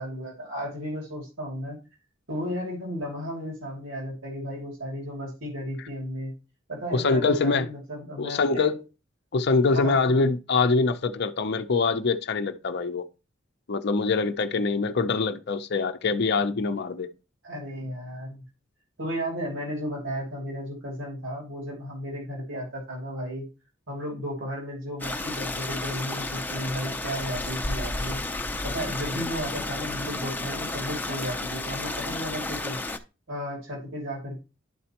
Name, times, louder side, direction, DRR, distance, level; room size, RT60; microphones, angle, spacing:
voice 1, 0.0-1.8 2.3-6.3 6.7-8.7 9.7-10.0 17.4-18.4 19.0-23.5 23.9-28.2 28.6-32.8 33.3-34.4, equal, 85° right, 2.5 m, -34 dB
voice 2, 6.9-7.7 8.2-8.8 9.3-13.0 13.7-17.1, left 4 dB, 55° left, 0.6 m, -24 dB
Stream, 25.0-33.0, left 2 dB, 10° left, 0.5 m, -32 dB
11.0 x 4.2 x 2.9 m
head